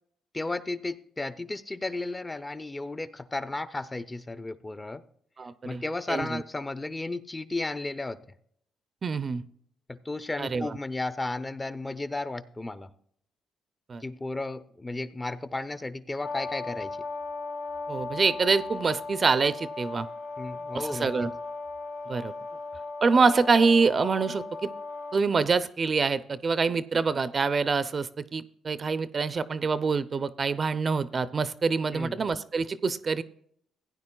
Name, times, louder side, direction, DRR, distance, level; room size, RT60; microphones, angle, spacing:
voice 1, 0.3-5.0 5.6-8.2 9.9-12.9 14.0-17.0 20.4-21.1 22.5-22.6 31.9-32.2, left 2 dB, 20° left, 13 dB, 0.5 m, -34 dB
voice 2, 5.4-5.8 6.1-6.4 9.0-9.4 10.4-10.8 13.9-14.0 17.9-20.1 20.7-21.3 22.1-22.3 23.0-24.7 25.1-33.2, right 4 dB, 40° right, 14 dB, 0.4 m, -25 dB
Brass instrument, 16.2-25.2, left 3 dB, 75° left, 1.9 m, -37 dB
16.5 x 9.3 x 2.3 m, 0.66 s
cardioid pair, 90°, 0 cm